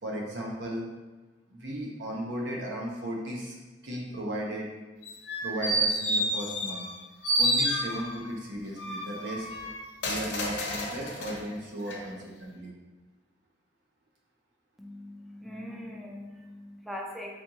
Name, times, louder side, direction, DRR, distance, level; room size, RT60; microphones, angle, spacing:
voice 1, 0.0-0.9 1.5-3.5 3.8-4.7 5.4-6.8 7.4-9.5 10.0-12.7, right 1 dB, 70° right, -2 dB, 0.9 m, -35 dB
sound 1, 5.1-6.9 7.2-8.2 8.8-11.4 11.9-12.0, equal, 65° left, 0.9 m, -29 dB
voice 2, 14.8-17.4, left 1 dB, ahead, -1 dB, 0.4 m, -41 dB
4.5 x 3.6 x 2.9 m, 1.2 s
head